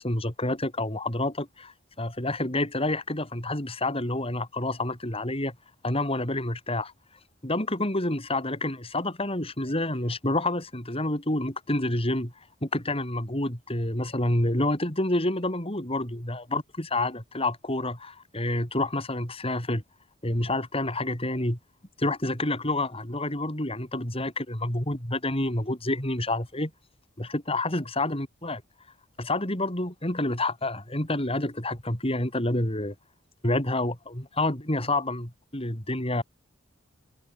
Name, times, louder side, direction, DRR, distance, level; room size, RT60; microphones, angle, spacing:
voice 1, 0.0-5.6 5.8-6.9 7.4-12.3 12.6-19.8 20.2-21.6 22.0-26.7 27.2-28.6 29.2-32.9 33.4-36.2, left 2 dB, 30° left, 5.7 m, -28 dB
head